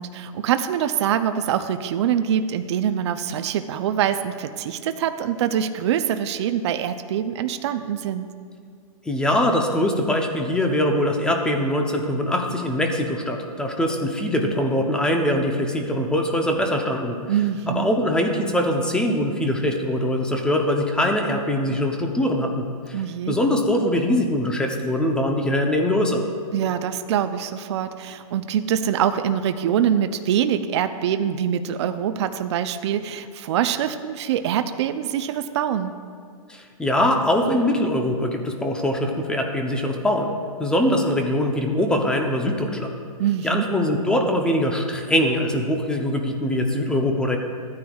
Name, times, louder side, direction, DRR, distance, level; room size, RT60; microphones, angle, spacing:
voice 1, 0.0-8.3 17.3-18.0 22.9-23.4 26.5-35.9 43.2-43.7, right 9 dB, 50° right, 9 dB, 0.5 m, -24 dB
voice 2, 9.0-17.1 17.7-23.0 23.3-26.2 36.5-40.3 40.6-42.9 43.4-47.4, left 1 dB, 5° left, 3 dB, 0.6 m, -22 dB
14.5 x 9.4 x 2.3 m, 2.1 s
hypercardioid pair, 150°, 19 cm